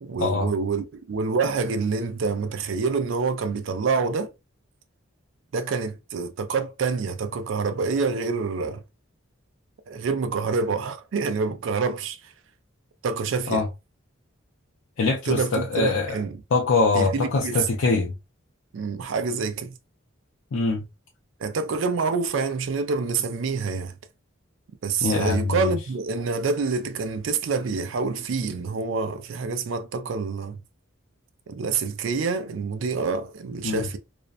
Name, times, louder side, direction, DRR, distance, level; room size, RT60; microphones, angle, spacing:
voice 1, 0.0-4.3 5.5-8.8 9.9-12.3 13.0-13.6 15.3-16.4 16.9-17.7 18.7-19.7 21.4-23.9 24.8-30.6 31.5-34.0, right 4 dB, 70° right, 0.4 m, -27 dB
voice 2, 15.0-16.2 16.5-18.1 20.5-20.8 25.0-25.7 33.6-33.9, left 3 dB, 75° left, 0.5 m, -23 dB
2.5 x 2.1 x 2.3 m
head